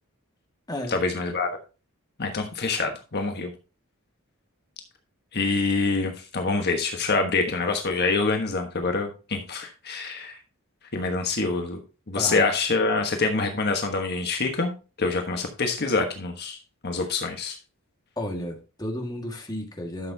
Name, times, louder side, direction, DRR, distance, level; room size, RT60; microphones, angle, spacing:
voice 1, 0.9-1.5 2.2-3.5 5.3-10.4 10.9-11.8 12.1-14.7 15.0-16.6 16.8-17.5, left 3 dB, 50° left, 4 dB, 1.3 m, -26 dB
voice 2, 18.2-20.1, left 1 dB, 20° left, 2 dB, 1.8 m, -32 dB
11.5 x 6.8 x 2.8 m, 0.31 s
head